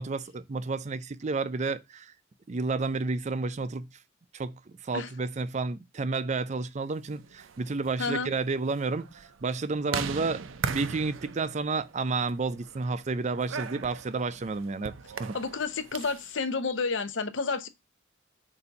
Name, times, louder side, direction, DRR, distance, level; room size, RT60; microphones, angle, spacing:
voice 1, 0.0-2.1 2.5-3.9 4.3-10.4 10.7-14.9 15.2-15.3, right 3 dB, 35° right, 0.5 m, -31 dB
sound 1, 7.2-16.3, right 5 dB, 90° right, 0.6 m, -39 dB
voice 2, 8.0-8.3 15.3-17.7, left 4 dB, 70° left, 0.7 m, -30 dB
6.9 x 2.7 x 5.2 m
head